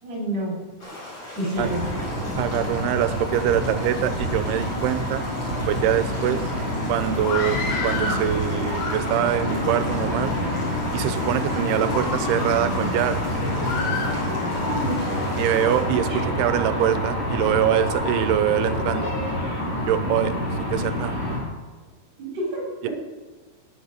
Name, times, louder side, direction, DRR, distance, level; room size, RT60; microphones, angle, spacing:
voice 1, 0.0-0.6 1.4-1.8 16.1-16.2 22.2-22.9, right 1 dB, 40° right, -1 dB, 5.2 m, -28 dB
sound 1, 0.8-15.8, left 1 dB, 35° left, 5.7 m, -39 dB
sound 2, 1.6-21.4, left 1 dB, 15° left, 5.8 m, -27 dB
voice 2, 2.4-5.2 5.7-6.5 6.9-10.4 10.9-13.2 15.4-19.1 19.9-20.3 20.7-21.1 22.8-22.9, right 11 dB, 85° right, 12 dB, 2.7 m, -24 dB
Screaming, 7.2-8.3 8.7-9.4 10.1-10.7 11.2-11.4 11.9-12.8 13.6-14.7, left 4 dB, 90° left, 3.8 m, -31 dB
17.5 x 9.6 x 6.6 m, 1.3 s
omnidirectional pair, 4.7 m